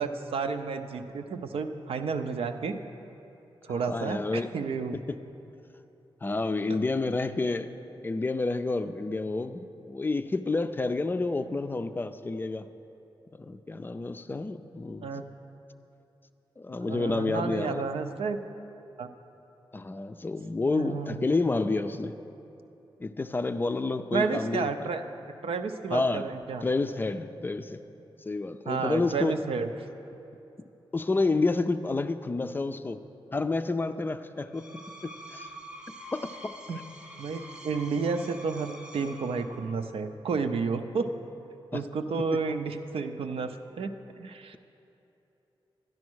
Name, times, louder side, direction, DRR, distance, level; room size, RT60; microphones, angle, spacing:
voice 1, 0.0-2.8 3.6-5.0 15.0-15.2 16.8-18.4 19.0-19.1 20.7-21.3 24.1-25.0 25.4-26.7 28.7-29.7 36.7-36.8 37.2-41.1 41.7-44.6, right 5 dB, 90° right, 7 dB, 0.7 m, -31 dB
voice 2, 3.9-4.5 4.9-5.2 6.2-7.7 8.0-12.7 13.3-15.2 16.6-17.8 19.7-22.1 23.0-24.9 25.9-26.3 26.6-27.8 28.3-29.4 30.9-33.0 33.3-34.7 35.0-35.5 36.1-36.4 41.7-41.8, left 3 dB, 20° left, 9 dB, 0.4 m, -29 dB
Screech, 34.4-39.9, equal, 10° right, 0.7 m, -46 dB
12.0 x 10.5 x 6.3 m, 2.9 s
wide cardioid pair, 175°, 9 cm